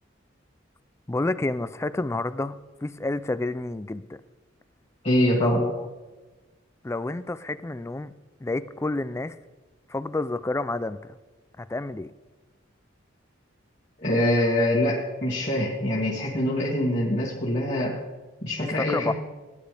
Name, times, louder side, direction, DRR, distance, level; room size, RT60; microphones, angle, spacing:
voice 1, 1.1-2.6 2.8-4.2 5.4-5.9 6.8-8.1 8.4-9.4 9.9-11.2 11.6-12.1 18.7-19.1, left 2 dB, 15° left, 14 dB, 0.4 m, -29 dB
voice 2, 5.0-5.6 14.0-18.0 18.4-19.1, left 1 dB, 35° left, -8 dB, 2.6 m, -24 dB
18.0 x 10.5 x 3.4 m, 1.2 s
head